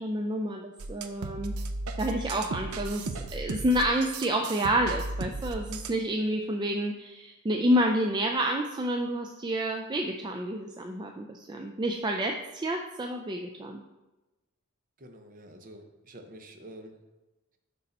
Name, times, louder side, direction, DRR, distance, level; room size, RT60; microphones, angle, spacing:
voice 1, 0.0-1.5 2.0-13.8, right 1 dB, 20° right, 2 dB, 0.4 m, -29 dB
sound 1, 0.8-6.0, right 2 dB, 85° right, 0.6 m, -36 dB
voice 2, 15.0-17.0, right 1 dB, 40° right, 5 dB, 0.8 m, -48 dB
6.6 x 5.4 x 4.1 m, 1.1 s
head